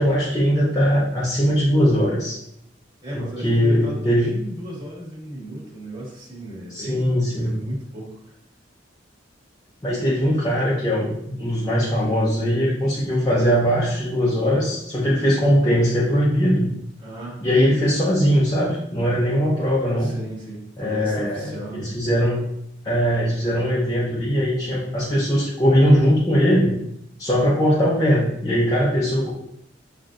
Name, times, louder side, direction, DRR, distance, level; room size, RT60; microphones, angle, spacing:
voice 1, 0.0-2.4 3.1-4.3 6.7-7.5 9.8-16.7 17.4-20.1 20.8-22.4 22.8-26.7 27.2-29.3, equal, 20° left, -8 dB, 0.8 m, -20 dB
voice 2, 3.0-8.1 17.0-17.4 20.0-21.9, right 1 dB, 25° right, -5 dB, 1.6 m, -35 dB
7.7 x 2.6 x 2.5 m, 0.74 s
head